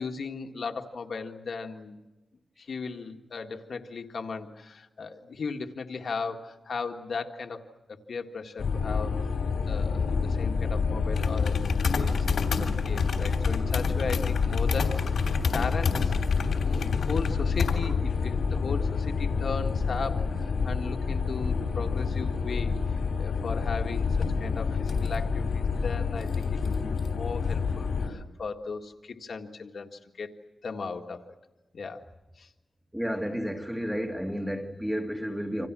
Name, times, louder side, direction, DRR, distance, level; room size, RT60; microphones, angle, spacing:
voice 1, 0.0-2.0 2.6-9.2 9.7-11.6 11.9-16.1 16.6-30.4 30.6-31.3 31.7-32.0 32.4-32.5, left 4 dB, 65° left, 1.8 m, -37 dB
sound 1, 8.6-28.1, left 5 dB, 85° left, 3.2 m, -27 dB
voice 2, 32.9-35.7, equal, 5° right, 2.2 m, -31 dB
29.0 x 26.5 x 6.2 m
wide cardioid pair, 135°, 0 cm